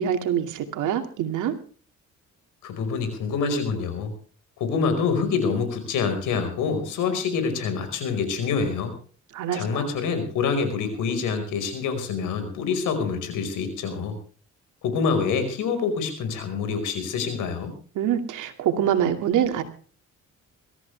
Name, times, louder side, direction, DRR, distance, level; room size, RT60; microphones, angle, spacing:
voice 1, 0.0-1.5 9.3-9.8 18.0-19.6, right 9 dB, 85° right, 6 dB, 2.5 m, -25 dB
voice 2, 2.6-4.1 4.6-8.9 9.5-14.2 14.8-17.7, left 5 dB, 90° left, 8 dB, 5.1 m, -26 dB
23.0 x 14.0 x 3.5 m, 0.41 s
cardioid pair, 90°, 30 cm